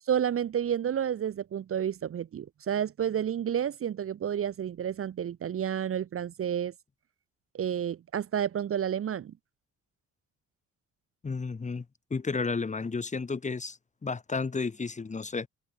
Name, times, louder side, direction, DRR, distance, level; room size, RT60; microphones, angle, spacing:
voice 1, 0.1-6.7 7.5-9.3, right 9 dB, 45° right, 0.9 m, -30 dB
voice 2, 11.2-11.8 12.1-15.5, left 4 dB, 25° left, 1.2 m, -32 dB
cardioid pair, 90°, 30 cm